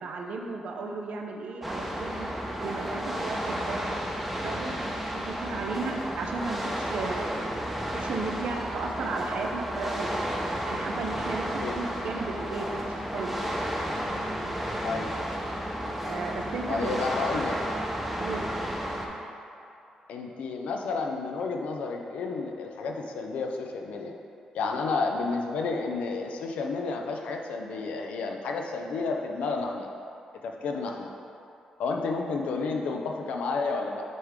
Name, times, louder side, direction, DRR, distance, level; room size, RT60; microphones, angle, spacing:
voice 1, 0.0-2.3 2.6-4.0 4.4-10.3 10.7-13.4 16.0-17.0 17.3-17.6 18.2-18.5, right 3 dB, 75° right, 2 dB, 0.6 m, -35 dB
sound 1, 1.6-19.1, equal, 5° right, 0.7 m, -32 dB
voice 2, 16.7-17.6 20.1-24.1 24.5-29.9 30.4-31.1 31.8-34.0, left 4 dB, 90° left, 2 dB, 0.5 m, -31 dB
7.5 x 3.6 x 3.6 m, 2.6 s
cardioid pair, 115°, 2 cm